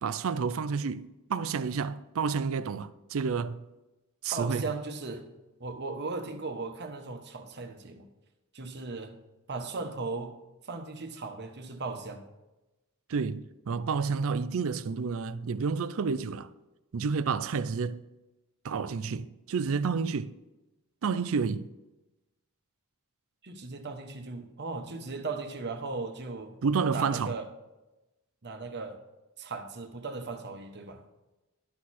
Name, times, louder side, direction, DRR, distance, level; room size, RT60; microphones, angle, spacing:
voice 1, 0.0-3.6 4.2-4.6 13.1-16.5 16.9-18.0 18.6-20.3 21.0-21.7 26.6-27.3, right 5 dB, 70° right, 0.4 m, -30 dB
voice 2, 4.3-5.2 5.6-8.1 8.5-9.1 9.5-10.3 10.6-12.2 23.4-26.5 26.9-27.5 28.4-29.0 29.4-31.0, right 3 dB, 50° right, 1.1 m, -37 dB
11.5 x 6.4 x 4.2 m
head